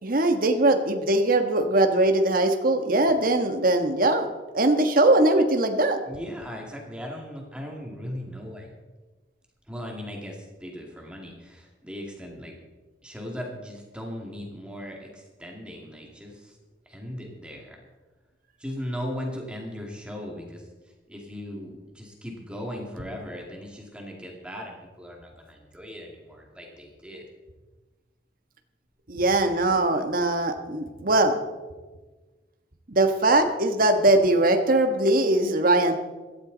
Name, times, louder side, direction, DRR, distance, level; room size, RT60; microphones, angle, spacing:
voice 1, 0.0-4.3 4.5-6.0 29.1-31.4 32.9-36.0, right 2 dB, 50° right, 6 dB, 1.4 m, -21 dB
voice 2, 6.0-8.7 9.7-12.6 13.0-16.6 16.9-17.8 18.6-27.2, equal, 5° right, 0 dB, 2.2 m, -38 dB
16.5 x 13.5 x 4.0 m, 1.3 s
head